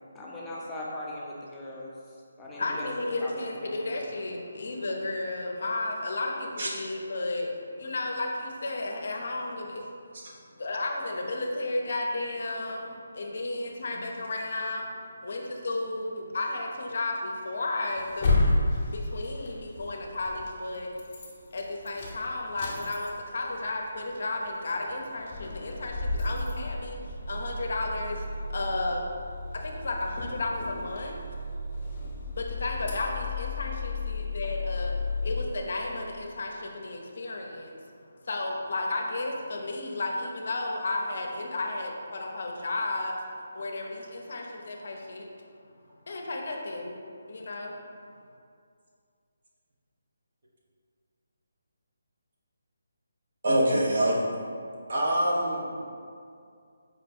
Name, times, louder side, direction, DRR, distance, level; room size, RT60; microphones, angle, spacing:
voice 1, 0.1-1.9 2.4-2.9 3.2-3.9, left 1 dB, 10° left, -6 dB, 0.5 m, -39 dB
voice 2, 2.4-9.9 10.5-18.7 18.9-20.9 21.5-29.1 29.4-31.3 31.8-31.9 32.3-34.9 35.2-37.7 38.2-43.2 43.5-45.3 46.1-47.0 47.3-47.8, left 2 dB, 60° left, 1 dB, 0.6 m, -33 dB
sound 1, 18.0-20.5 20.9-21.3 21.6-23.4 23.7-23.8 24.1-24.2 24.8-25.0 25.3-35.4, left 2 dB, 35° left, 0.8 m, -32 dB
voice 3, 53.4-54.2 54.9-55.7, right 1 dB, 60° right, -4 dB, 1.0 m, -25 dB
4.9 x 2.2 x 4.2 m, 2.3 s
figure-of-eight pair, 160°, 0 cm